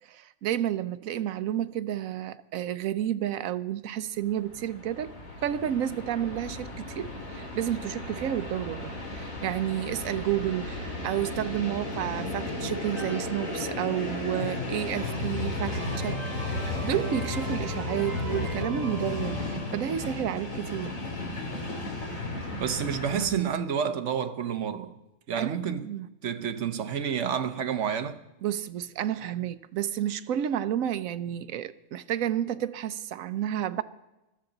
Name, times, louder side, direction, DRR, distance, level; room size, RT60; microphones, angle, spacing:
voice 1, 0.0-5.2 5.4-16.2 16.5-21.0 25.4-26.1 28.4-33.8, right 11 dB, 85° right, 1.1 m, -31 dB
Train, 4.3-23.3, left 2 dB, 85° left, 3.1 m, -34 dB
sound 1, 12.7-14.4 14.9-15.0 15.4-19.9, right 1 dB, 30° left, 4.9 m, -41 dB
voice 2, 22.6-24.9 25.3-25.9 26.2-28.2, right 8 dB, 65° right, 1.2 m, -29 dB
20.5 x 13.5 x 3.9 m
omnidirectional pair, 1.4 m